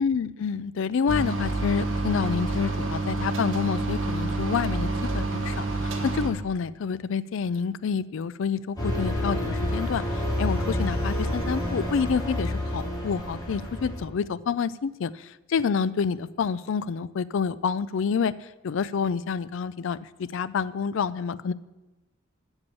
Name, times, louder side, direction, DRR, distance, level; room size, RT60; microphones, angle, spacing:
voice 1, 0.0-18.3 18.6-21.5, left 6 dB, 65° left, 17 dB, 0.4 m, -28 dB
sound 1, 1.1-6.3, right 2 dB, 65° right, 1.3 m, -28 dB
sound 2, 8.8-14.0, left 1 dB, 20° left, 3.4 m, -29 dB
8.1 x 7.1 x 7.0 m, 1.1 s
head